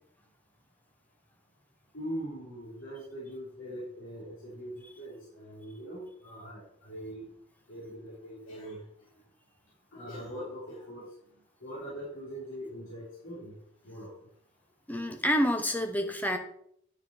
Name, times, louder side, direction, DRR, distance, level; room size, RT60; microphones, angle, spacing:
voice 1, 1.9-7.3 7.7-8.8 9.9-11.1 11.6-13.6 13.8-14.1, equal, 80° left, -8 dB, 3.5 m, -41 dB
voice 2, 14.9-16.4, equal, 10° left, 6 dB, 1.0 m, -28 dB
9.5 x 6.7 x 4.4 m, 0.69 s
head